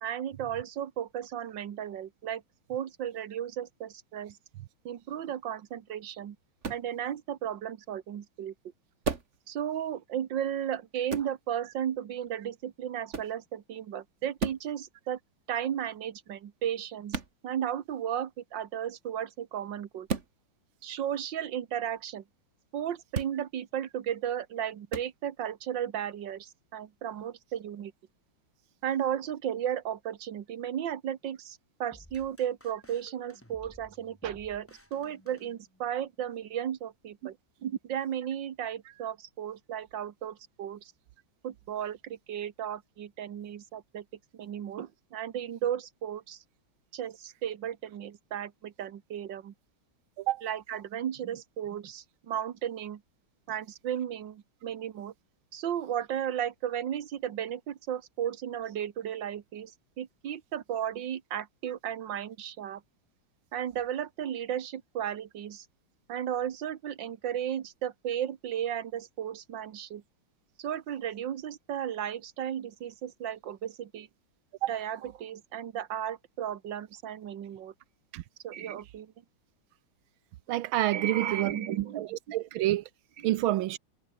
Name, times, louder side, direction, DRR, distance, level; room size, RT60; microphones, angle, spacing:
voice 1, 0.0-2.4 2.7-4.4 4.9-6.4 6.7-8.5 9.5-15.2 15.5-20.1 20.8-22.2 22.7-27.9 28.8-37.4 37.6-40.9 41.4-44.0 44.3-46.4 46.9-49.5 50.4-53.0 53.5-55.1 55.5-59.7 60.0-62.8 63.5-65.7 66.1-70.0 70.6-74.1 74.7-77.7 78.4-79.1 80.9-82.4 83.2-83.3, right 10 dB, 65° right, 2.0 m, -34 dB
sound 1, 6.6-6.9 9.0-9.4 11.1-11.3 13.1-13.4 14.4-14.7 17.1-17.3 20.1-20.3 23.1-23.4 24.9-25.1, right 4 dB, 35° right, 2.1 m, -33 dB
sound 2, 31.9-36.1, equal, 5° left, 6.1 m, -56 dB
voice 2, 80.5-82.8 83.2-83.8, right 15 dB, 85° right, 1.5 m, -28 dB
omnidirectional pair, 2.2 m